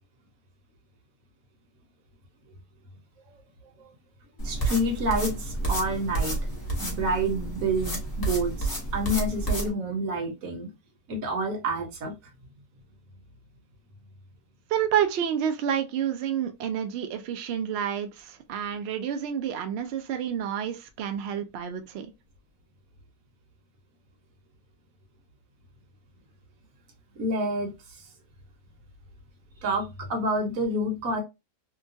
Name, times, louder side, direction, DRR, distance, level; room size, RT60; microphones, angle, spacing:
sound 1, 4.4-9.7, right 2 dB, 20° left, 0.7 m, -30 dB
voice 1, 4.4-10.7 11.1-12.1 27.2-28.1 29.6-31.2, right 1 dB, 65° right, 1.2 m, -28 dB
voice 2, 14.7-22.1, right 9 dB, 90° right, 0.5 m, -29 dB
2.9 x 2.3 x 2.6 m
omnidirectional pair, 1.6 m